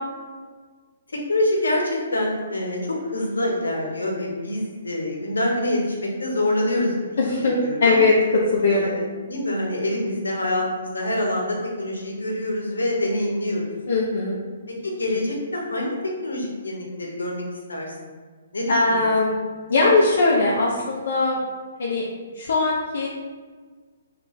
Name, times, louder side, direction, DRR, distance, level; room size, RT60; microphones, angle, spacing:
voice 1, 1.3-7.2 7.6-8.0 8.7-13.7 14.8-17.4 17.7-18.2 18.5-19.1, left 1 dB, 85° left, 0 dB, 1.0 m, -26 dB
voice 2, 7.2-8.9 13.9-14.4 18.7-19.4 19.7-21.4 21.8-22.0 22.3-23.1, left 3 dB, 65° left, -4 dB, 0.6 m, -20 dB
3.8 x 3.3 x 3.1 m, 1.5 s
hypercardioid pair, 135°, 0 cm